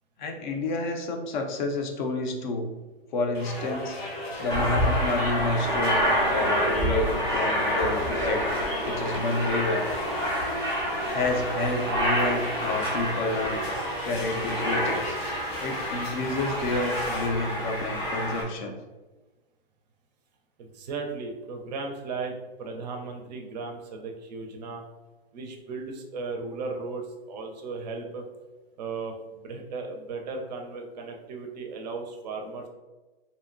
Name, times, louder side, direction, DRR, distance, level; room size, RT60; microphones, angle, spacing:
voice 1, 0.2-2.7 3.1-4.0 4.4-8.5 8.9-9.9 11.0-13.6 14.0-15.2 15.6-18.8, left 2 dB, 50° left, 3 dB, 0.5 m, -29 dB
sound 1, 3.3-17.3, equal, 85° left, 1.0 m, -36 dB
Aircraft, 4.5-18.4, equal, 10° left, 0.6 m, -28 dB
voice 2, 20.6-22.3 22.6-24.8 25.3-27.0 27.3-28.3 28.8-32.7, right 4 dB, 45° right, 3 dB, 0.4 m, -36 dB
2.6 x 2.1 x 2.4 m, 1.2 s
hypercardioid pair, 125°, 30 cm